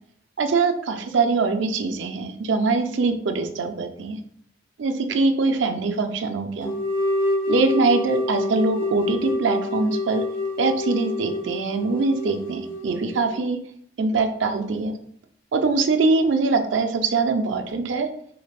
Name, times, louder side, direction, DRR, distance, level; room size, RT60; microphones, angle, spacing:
voice 1, 0.4-4.2 4.8-6.7 7.5-10.2 10.6-13.6 14.0-14.9 15.5-18.1, right 3 dB, 75° right, 7 dB, 0.4 m, -23 dB
sound 1, 6.6-13.4, left 2 dB, 85° left, 1.4 m, -27 dB
3.9 x 3.3 x 2.4 m, 0.64 s
head